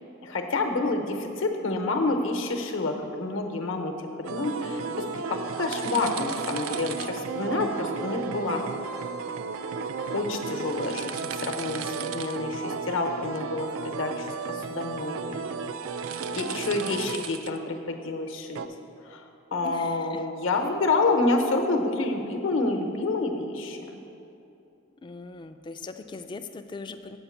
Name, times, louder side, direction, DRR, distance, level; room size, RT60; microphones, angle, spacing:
voice 1, 0.2-3.9 4.2-8.6 10.1-15.4 16.3-18.6 19.1-19.2 19.5-23.8, left 3 dB, 70° left, 5 dB, 0.8 m, -28 dB
sound 1, 4.2-17.6 18.6-18.7, right 5 dB, 90° right, 0.4 m, -33 dB
voice 2, 14.5-15.6 16.2-17.2 19.6-20.2 25.0-27.2, left 3 dB, 25° left, 8 dB, 0.3 m, -42 dB
8.0 x 5.0 x 7.1 m, 2.8 s
head